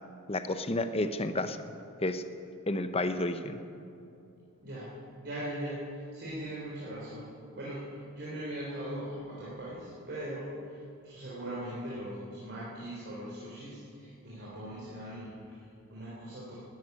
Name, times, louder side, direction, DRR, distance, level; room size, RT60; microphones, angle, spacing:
voice 1, 0.3-1.6 2.0-2.2 2.7-3.6, left 2 dB, 25° left, 10 dB, 0.7 m, -31 dB
voice 2, 4.6-4.9 5.2-16.6, right 1 dB, 50° right, -7 dB, 3.6 m, -40 dB
12.5 x 11.0 x 9.4 m, 2.6 s
head